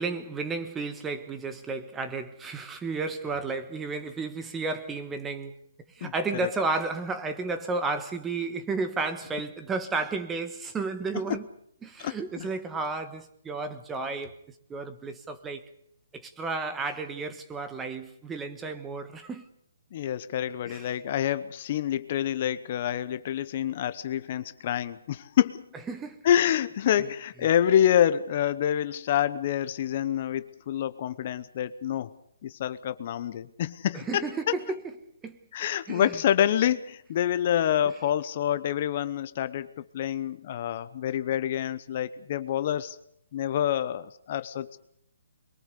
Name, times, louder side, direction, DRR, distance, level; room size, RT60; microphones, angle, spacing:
voice 1, 0.0-5.5 5.9-11.5 11.8-14.3 14.7-15.6 16.1-19.4 20.7-20.9 25.9-26.2 27.0-27.1 33.9-34.8 35.2-35.4 35.9-36.2, right 3 dB, 10° right, 1.3 m, -32 dB
voice 2, 12.0-12.5 19.9-25.6 26.2-32.1 32.4-34.5 35.5-43.0 43.3-44.8, left 10 dB, 40° left, 0.8 m, -27 dB
22.5 x 22.0 x 6.8 m
hypercardioid pair, 160°, 0 cm